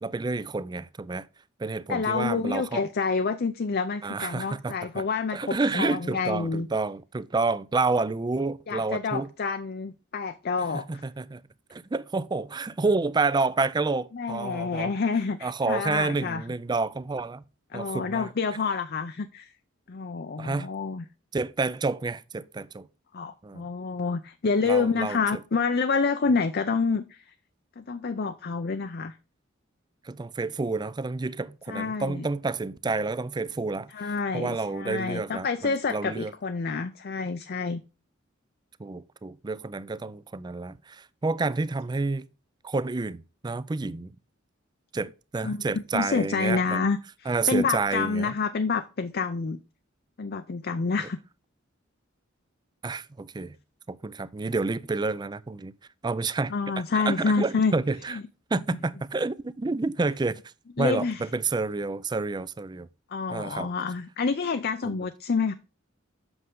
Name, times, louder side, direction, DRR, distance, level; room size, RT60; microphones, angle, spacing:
voice 1, 0.0-1.3 1.6-2.8 4.0-5.0 5.3-9.3 10.6-11.4 11.7-14.9 15.4-17.4 17.7-18.6 20.4-20.7 21.3-22.9 23.4-23.7 24.6-25.4 30.0-36.3 38.8-42.3 42.6-44.1 44.9-46.9 47.3-48.3 52.8-53.6 53.9-55.7 56.0-56.5 56.9-58.2 58.5-60.4 60.8-62.9 63.3-63.7 64.8-65.0, right 3 dB, 20° right, 0.4 m, -29 dB
voice 2, 1.9-6.7 8.7-11.0 14.1-16.4 17.7-19.5 19.9-21.0 23.1-27.2 27.8-29.2 31.7-32.2 33.9-37.8 45.4-49.6 50.2-51.2 56.5-57.7 58.1-58.2 60.8-61.2 63.1-65.5, left 4 dB, 50° left, 0.5 m, -28 dB
7.9 x 6.3 x 3.7 m
head